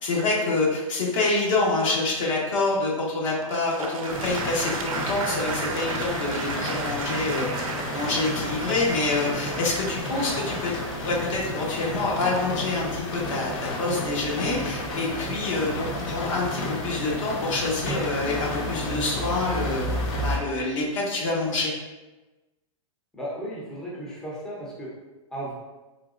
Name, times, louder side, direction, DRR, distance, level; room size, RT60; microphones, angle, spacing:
voice 1, 0.0-7.6 7.9-19.9 20.2-21.7, left 2 dB, 65° left, -3 dB, 1.2 m, -27 dB
Applause, 3.4-12.4, right 4 dB, 75° right, 0.5 m, -35 dB
sound 1, 4.1-20.4, left 1 dB, 50° left, 1.0 m, -31 dB
voice 2, 23.1-24.9 25.3-25.5, right 1 dB, 5° left, -7 dB, 0.7 m, -35 dB
3.7 x 2.9 x 2.4 m, 1.1 s
hypercardioid pair, 130°, 18 cm